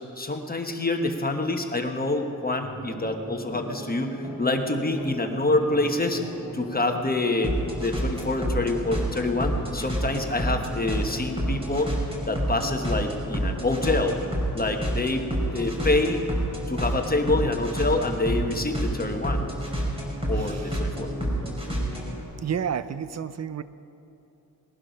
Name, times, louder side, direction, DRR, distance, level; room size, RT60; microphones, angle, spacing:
voice 1, 0.2-6.2 6.5-11.9 12.3-14.2 14.5-15.2 15.5-16.2 16.7-19.4 20.3-21.1, left 2 dB, 25° left, 4 dB, 1.2 m, -26 dB
sound 1, 2.6-22.2, right 1 dB, 15° right, 3.8 m, -30 dB
voice 2, 20.3-20.8 22.4-23.6, right 8 dB, 45° right, 14 dB, 0.6 m, -31 dB
19.5 x 11.5 x 5.2 m, 2.8 s
wide cardioid pair, 90°, 36 cm